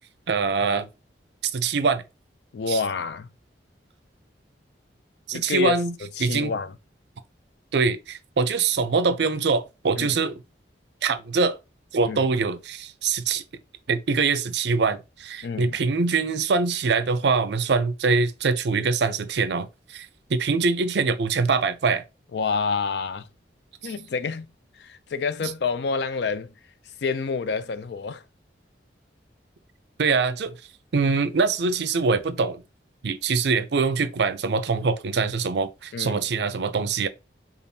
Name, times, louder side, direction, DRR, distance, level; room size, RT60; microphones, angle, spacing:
voice 1, 0.3-0.9 1.5-2.0 2.7-2.8 5.3-5.9 6.2-6.6 7.7-10.3 11.0-11.6 11.9-13.4 13.9-22.0 25.4-25.5 30.0-30.5 30.9-32.6 33.0-37.1, right 4 dB, 65° right, 0.5 m, -23 dB
voice 2, 2.5-3.3 5.3-5.8 6.2-6.8 10.0-10.2 12.1-12.3 15.4-15.8 22.3-23.3 23.8-24.5 24.7-26.5 27.0-28.2 35.9-36.2, left 5 dB, 65° left, 0.4 m, -28 dB
5.2 x 2.4 x 2.7 m
head